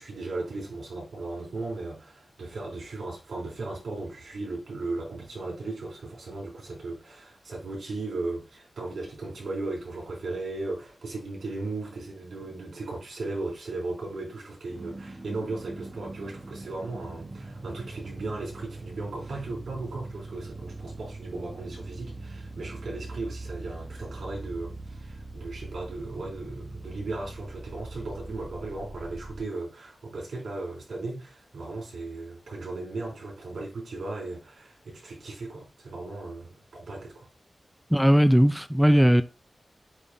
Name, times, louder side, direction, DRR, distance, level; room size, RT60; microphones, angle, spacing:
voice 1, 0.0-37.3, right 2 dB, 85° right, 3.8 m, -36 dB
sound 1, 14.7-29.4, right 2 dB, 20° right, 1.2 m, -41 dB
voice 2, 37.9-39.2, equal, ahead, 0.4 m, -18 dB
8.1 x 3.6 x 3.7 m
wide cardioid pair, 120°, 0 cm